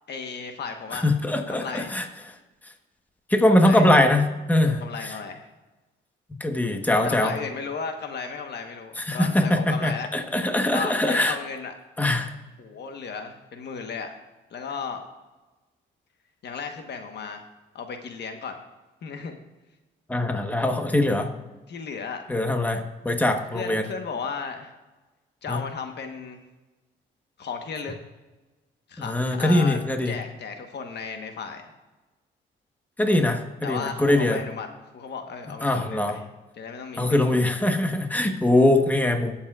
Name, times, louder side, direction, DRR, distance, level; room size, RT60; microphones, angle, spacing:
voice 1, 0.1-1.1 1.5-2.0 3.5-4.0 4.6-5.5 7.0-10.1 10.7-11.7 12.6-14.1 14.5-15.0 16.4-17.5 17.7-18.6 19.0-19.4 21.7-22.2 23.5-24.7 25.4-26.4 27.4-27.9 28.9-29.8 30.0-31.7 33.0-33.3 33.6-34.7 34.9-36.2 36.5-37.4, left 5 dB, 60° left, 5 dB, 1.2 m, -35 dB
voice 2, 0.9-2.0 3.3-4.8 6.4-7.3 9.0-11.3 12.0-12.3 20.1-21.3 22.3-23.8 25.5-25.6 29.1-30.1 33.0-34.4 35.6-36.2 37.0-39.3, left 1 dB, 10° left, 4 dB, 1.2 m, -22 dB
19.5 x 7.2 x 2.4 m, 1.1 s
cardioid pair, 90°, 20 cm